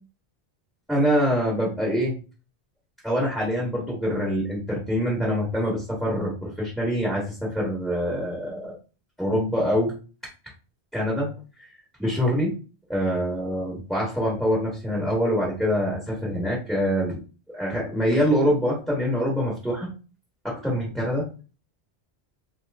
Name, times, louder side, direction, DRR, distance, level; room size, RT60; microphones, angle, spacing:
voice 1, 0.9-2.1 3.0-8.7 9.2-9.9 10.9-11.7 12.0-12.5 12.9-17.2 17.5-19.9 20.4-21.3, equal, ahead, -5 dB, 1.0 m, -25 dB
2.9 x 2.5 x 3.3 m, 0.34 s
omnidirectional pair, 1.1 m